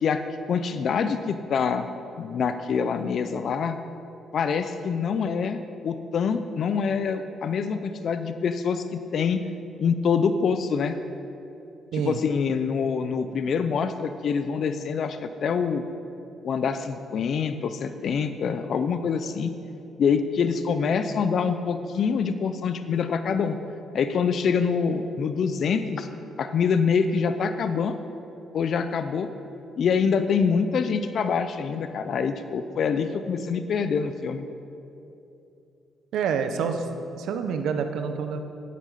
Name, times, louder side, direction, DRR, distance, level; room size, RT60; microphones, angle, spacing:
voice 1, 0.0-1.9 2.2-3.8 4.3-5.6 5.8-9.4 9.8-11.0 11.9-15.8 16.4-19.5 20.0-23.6 23.9-26.1 26.4-28.0 28.5-29.3 29.8-34.4, left 6 dB, 60° left, 10 dB, 0.5 m, -25 dB
voice 2, 36.1-38.4, right 6 dB, 80° right, 7 dB, 0.8 m, -27 dB
9.3 x 8.2 x 5.6 m, 2.8 s
cardioid pair, 90°, 0 cm